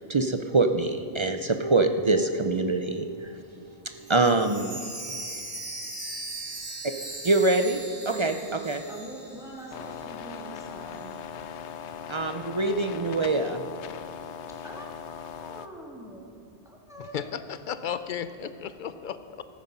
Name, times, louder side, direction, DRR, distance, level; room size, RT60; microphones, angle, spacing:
voice 1, 0.0-4.8 6.8-6.9 7.2-8.9 12.1-13.6, right 3 dB, 40° right, 7 dB, 0.4 m, -25 dB
Chime, 4.0-10.0 10.3-10.4 10.9-11.0, right 2 dB, 90° right, 2.5 m, -39 dB
voice 2, 8.1-8.4 8.9-11.2 14.6-17.4, right 1 dB, 5° right, -3 dB, 1.9 m, -44 dB
sound 1, 9.7-15.7, left 8 dB, 85° left, 0.9 m, -39 dB
voice 3, 17.0-19.4, left 8 dB, 55° left, 12 dB, 0.6 m, -34 dB
14.5 x 9.5 x 5.4 m, 2.5 s
omnidirectional pair, 1.1 m